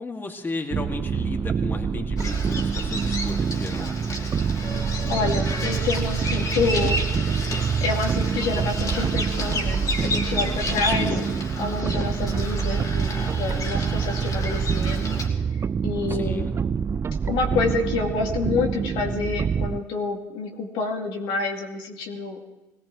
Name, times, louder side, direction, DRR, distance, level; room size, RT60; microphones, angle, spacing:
voice 1, 0.0-3.9 10.9-11.2 16.1-16.5, left 3 dB, 25° left, 3 dB, 2.1 m, -34 dB
sound 1, 0.7-19.8, right 6 dB, 30° right, 0.4 m, -26 dB
Bird vocalization bird call bird song, 2.2-15.3, left 2 dB, 40° left, 2.9 m, -32 dB
voice 2, 5.1-7.0 7.3-7.4 7.8-11.1 11.6-15.2 15.5-16.4 17.2-22.4, left 4 dB, 65° left, 1 dB, 2.2 m, -28 dB
21.5 x 17.5 x 3.1 m, 1.1 s
hypercardioid pair, 65°, 9 cm